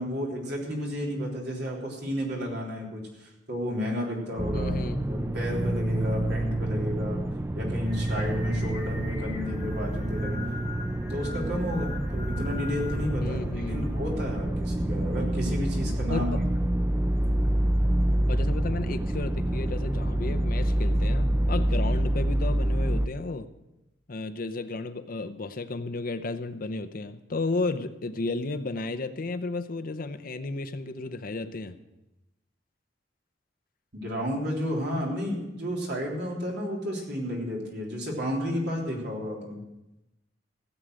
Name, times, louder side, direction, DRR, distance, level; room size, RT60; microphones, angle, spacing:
voice 1, 0.0-4.7 5.1-7.2 7.5-10.4 11.1-13.4 13.7-16.3 33.9-39.6, left 1 dB, 65° right, -2 dB, 3.6 m, -32 dB
sound 1, 4.4-23.1, right 1 dB, 15° right, 0.5 m, -27 dB
voice 2, 4.5-5.0 13.2-14.0 16.1-16.4 18.3-23.5 24.1-31.8, left 3 dB, 50° left, 10 dB, 0.7 m, -33 dB
Singing, 7.8-14.4, left 3 dB, 20° left, 4.1 m, -44 dB
16.0 x 8.0 x 6.3 m, 0.95 s
head